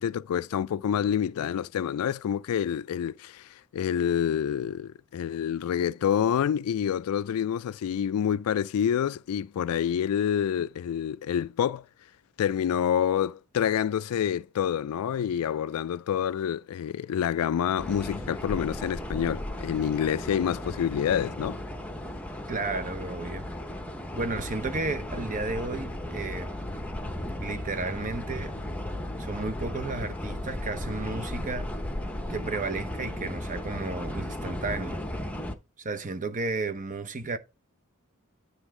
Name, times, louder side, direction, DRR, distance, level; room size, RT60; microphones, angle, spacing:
voice 1, 0.0-11.8 12.4-21.6, left 9 dB, 75° left, 0.3 m, -27 dB
sound 1, 17.8-35.5, left 1 dB, 5° left, 0.8 m, -35 dB
voice 2, 22.5-23.5 24.1-26.5 27.4-28.6 29.2-31.7 32.3-35.0 35.8-37.4, right 3 dB, 35° right, 0.9 m, -33 dB
9.7 x 3.4 x 4.8 m
head